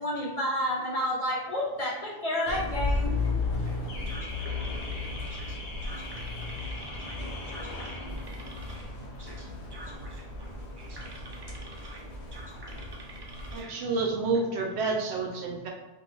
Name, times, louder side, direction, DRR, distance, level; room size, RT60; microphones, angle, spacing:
voice 1, 0.0-3.3, left 1 dB, 45° left, -6 dB, 0.5 m, -30 dB
Car / Alarm, 2.5-13.6, left 3 dB, 75° left, 0.9 m, -34 dB
voice 2, 4.1-7.2 7.5-8.9 9.2-12.0 12.3-13.8, right 2 dB, 40° right, -2 dB, 0.4 m, -48 dB
voice 3, 13.5-15.7, right 3 dB, 75° right, 0 dB, 0.8 m, -29 dB
2.4 x 2.3 x 3.0 m, 1.1 s
omnidirectional pair, 1.1 m